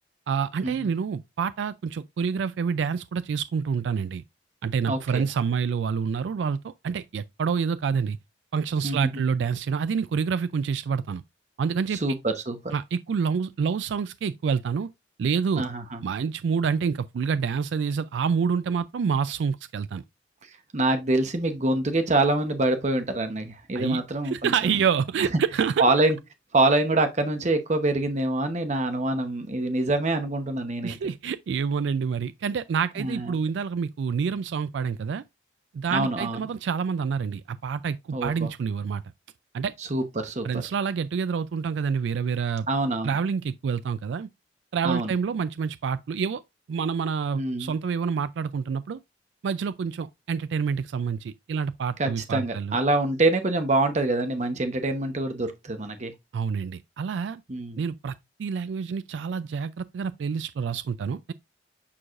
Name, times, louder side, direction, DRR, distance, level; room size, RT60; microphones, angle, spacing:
voice 1, 0.3-4.2 4.6-8.2 8.5-11.2 11.6-12.0 12.7-14.9 15.2-15.6 16.0-20.0 23.7-25.8 30.8-35.2 35.7-39.0 39.5-39.7 40.4-42.7 43.0-44.3 44.7-46.4 46.7-49.0 49.4-52.7 56.3-57.4 57.8-61.3, right 6 dB, 75° right, 0.3 m, -27 dB
voice 2, 4.9-5.3 8.8-9.2 11.9-12.7 15.6-16.0 20.7-24.8 25.2-25.3 25.8-26.2 26.5-30.9 33.0-33.4 35.9-36.5 38.1-38.5 39.8-40.6 42.7-43.2 44.8-45.1 47.3-47.8 52.0-56.1 57.5-57.8, right 2 dB, 40° right, 0.8 m, -25 dB
8.5 x 4.7 x 2.4 m
head